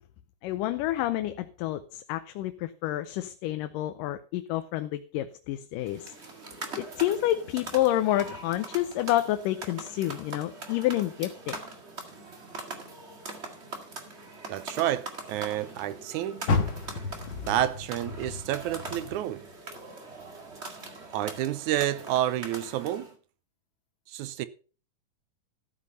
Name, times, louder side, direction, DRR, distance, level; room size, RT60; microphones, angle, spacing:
voice 1, 0.4-6.1 6.8-11.6, left 14 dB, 85° left, 2.3 m, -29 dB
sound 1, 5.8-23.1, right 3 dB, 25° right, 1.5 m, -42 dB
voice 2, 14.5-16.6 17.4-19.5 21.1-23.1 24.1-24.5, right 12 dB, 75° right, 2.0 m, -29 dB
Car, 16.4-19.7 20.1-21.5 21.9-22.0 22.6-22.7, left 3 dB, 50° left, 1.9 m, -32 dB
13.5 x 8.4 x 5.5 m
omnidirectional pair, 3.7 m